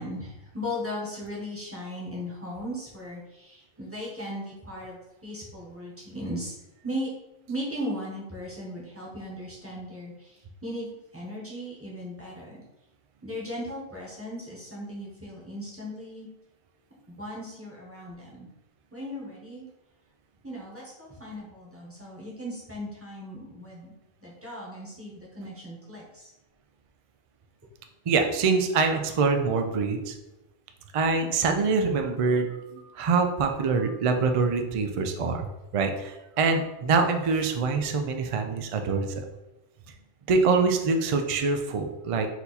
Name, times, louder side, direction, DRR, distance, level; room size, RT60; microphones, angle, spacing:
voice 1, 0.0-6.5 6.8-7.1 7.5-10.9 11.1-12.6 13.2-16.3 17.1-18.5 18.9-19.6 20.4-23.9 24.2-26.3, equal, 10° right, -5 dB, 1.1 m, -37 dB
voice 2, 28.1-30.2 30.9-39.1 40.3-42.3, right 4 dB, 60° right, 5 dB, 0.3 m, -25 dB
4.4 x 2.7 x 4.0 m, 0.99 s
omnidirectional pair, 1.2 m